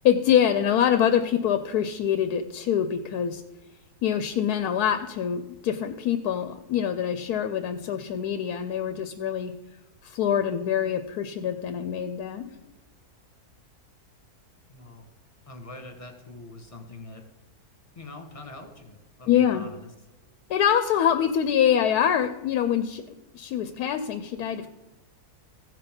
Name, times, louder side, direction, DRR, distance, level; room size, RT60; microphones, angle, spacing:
voice 1, 0.0-3.4 4.0-9.5 10.0-12.5 19.3-19.7 20.5-23.0 23.3-24.7, left 9 dB, 80° left, 9 dB, 1.1 m, -25 dB
voice 2, 14.7-15.0 15.5-17.2 17.9-19.9, left 2 dB, 20° left, 3 dB, 1.5 m, -43 dB
15.5 x 5.9 x 5.2 m, 1.0 s
omnidirectional pair, 1.7 m